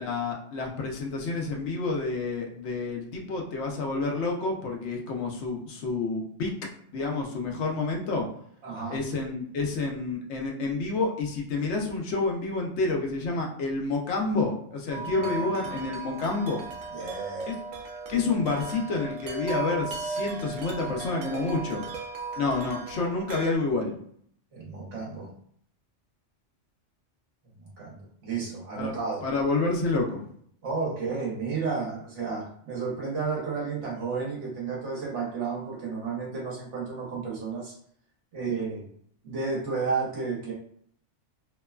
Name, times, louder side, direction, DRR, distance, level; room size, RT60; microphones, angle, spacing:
voice 1, 0.0-6.5 6.9-8.3 8.9-16.6 17.5-17.6 18.1-21.9 22.4-23.9 28.7-28.9 29.2-30.2, left 3 dB, 70° left, 1 dB, 0.9 m, -29 dB
voice 2, 8.6-9.0 14.9-15.8 16.9-17.5 24.5-25.3 27.6-29.2 30.6-37.7 38.3-38.8 39.2-40.5, right 4 dB, 70° right, -4 dB, 1.3 m, -32 dB
Wind chime, 14.9-23.5, right 4 dB, 90° right, 1.0 m, -37 dB
2.9 x 2.2 x 2.3 m, 0.63 s
omnidirectional pair, 1.3 m